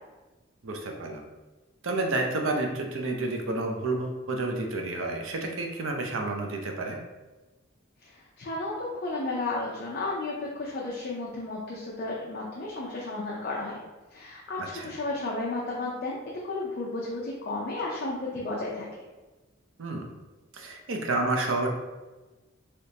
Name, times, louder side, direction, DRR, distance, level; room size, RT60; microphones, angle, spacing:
voice 1, 0.6-1.2 1.8-7.0 14.6-14.9 19.8-20.1 20.5-21.7, right 2 dB, 75° right, 2 dB, 0.5 m, -30 dB
voice 2, 8.4-13.8 14.1-16.2 16.5-18.9, left 2 dB, 50° left, -4 dB, 0.5 m, -33 dB
3.4 x 2.9 x 2.8 m, 1.2 s
head